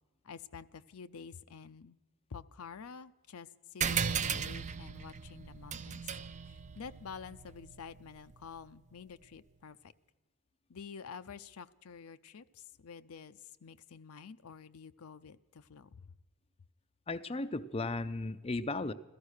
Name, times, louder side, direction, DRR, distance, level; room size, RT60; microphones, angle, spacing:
voice 1, 0.2-2.0 2.3-6.1 6.5-9.9 10.7-16.1, left 6 dB, 75° left, 12 dB, 0.5 m, -49 dB
sound 1, 3.8-8.7, right 6 dB, 35° right, 0.5 m, -37 dB
voice 2, 17.1-18.9, left 2 dB, 25° left, 10 dB, 0.5 m, -35 dB
16.0 x 13.5 x 6.4 m, 1.2 s
head